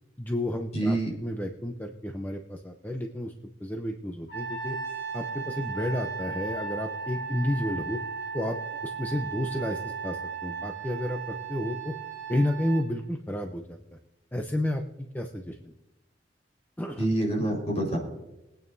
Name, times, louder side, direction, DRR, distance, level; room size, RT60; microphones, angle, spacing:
voice 1, 0.2-3.3 3.6-4.8 5.1-8.0 8.3-8.6 8.8-11.9 12.3-13.8 14.3-15.7 16.8-17.1, left 1 dB, 10° left, 3 dB, 0.7 m, -31 dB
voice 2, 0.7-1.1 17.0-18.0, right 1 dB, 40° left, -1 dB, 4.7 m, -26 dB
Trumpet, 4.3-12.9, right 5 dB, 85° left, 4.6 m, -36 dB
23.0 x 9.0 x 2.7 m, 0.99 s
head